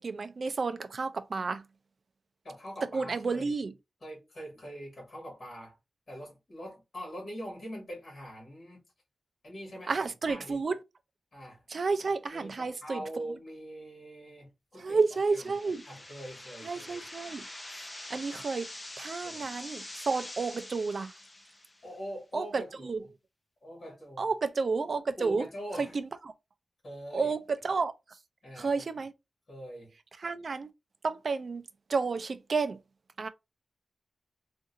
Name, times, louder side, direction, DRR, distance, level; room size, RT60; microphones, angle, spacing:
voice 1, 0.0-1.6 2.9-3.7 9.9-10.8 11.7-13.0 14.8-15.8 16.6-17.4 18.1-18.7 19.0-21.1 22.3-23.0 24.2-25.5 25.8-26.1 27.1-27.9 28.6-29.1 30.2-30.7 31.0-31.6 31.9-32.8 33.2-33.3, right 4 dB, 50° right, 0.4 m, -31 dB
voice 2, 2.4-3.5 4.0-5.8 6.1-8.8 9.4-10.6 11.3-11.6 12.3-15.0 15.3-15.6 15.8-17.0 19.2-19.5 21.8-23.1 23.6-24.3 25.2-26.0 26.8-27.3 28.4-28.9 29.5-29.9, equal, 40° left, 1.8 m, -43 dB
sound 1, 15.0-21.9, left 1 dB, 20° left, 0.6 m, -45 dB
3.7 x 2.6 x 2.5 m
wide cardioid pair, 160°, 0 cm